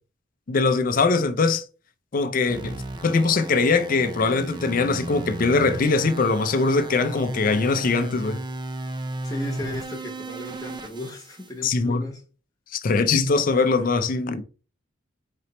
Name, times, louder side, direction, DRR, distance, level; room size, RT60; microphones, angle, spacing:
voice 1, 0.5-1.6 2.1-8.4 11.6-12.0 12.7-14.4, left 4 dB, 45° left, 0.5 m, -22 dB
sound 1, 2.5-11.5, right 2 dB, 25° right, 0.4 m, -35 dB
voice 2, 9.2-12.2, left 1 dB, 20° left, 1.0 m, -35 dB
4.1 x 3.0 x 4.2 m
head